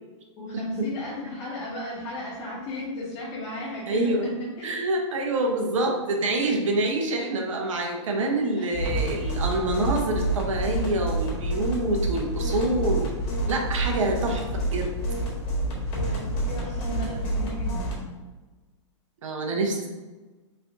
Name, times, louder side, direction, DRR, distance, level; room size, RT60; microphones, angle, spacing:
voice 1, 0.4-4.8 8.5-8.7 14.2-14.5 16.1-18.1, left 1 dB, 35° left, -7 dB, 0.9 m, -35 dB
voice 2, 3.9-4.3 4.6-13.1 13.5-14.4 14.7-14.9 19.2-19.9, right 2 dB, 85° right, 1 dB, 0.8 m, -26 dB
sound 1, 8.7-17.9, right 1 dB, 50° left, 1.4 m, -28 dB
3.4 x 2.6 x 3.4 m, 1.2 s
hypercardioid pair, 140°, 16 cm